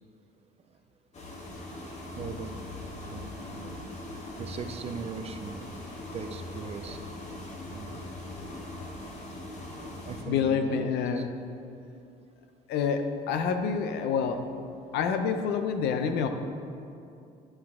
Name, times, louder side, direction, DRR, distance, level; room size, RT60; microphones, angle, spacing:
sound 1, 1.1-10.2, left 2 dB, 40° left, 1.4 m, -41 dB
voice 1, 2.1-2.8 3.1-3.9 4.4-5.6 6.1-7.0 7.7-8.0 10.0-11.3, right 6 dB, 35° right, 8 dB, 0.5 m, -40 dB
voice 2, 10.3-11.3 12.7-14.4 14.9-16.3, left 6 dB, 80° left, 7 dB, 0.6 m, -27 dB
11.0 x 4.8 x 3.6 m, 2.5 s
cardioid pair, 110°, 17 cm